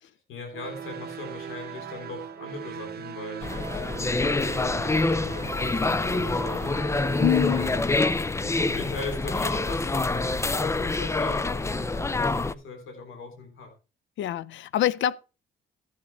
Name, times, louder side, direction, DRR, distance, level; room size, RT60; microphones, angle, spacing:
voice 1, 0.3-6.7 7.4-7.7 8.4-13.7, left 3 dB, 85° left, 3.6 m, -39 dB
sound 1, 0.5-7.9, right 8 dB, 55° right, 1.2 m, -40 dB
sound 2, 3.4-12.5, left 3 dB, 15° left, 0.5 m, -26 dB
voice 2, 7.2-7.7 14.2-15.2, left 12 dB, 70° left, 0.6 m, -25 dB
14.0 x 7.4 x 4.3 m
cardioid pair, 90°, 20 cm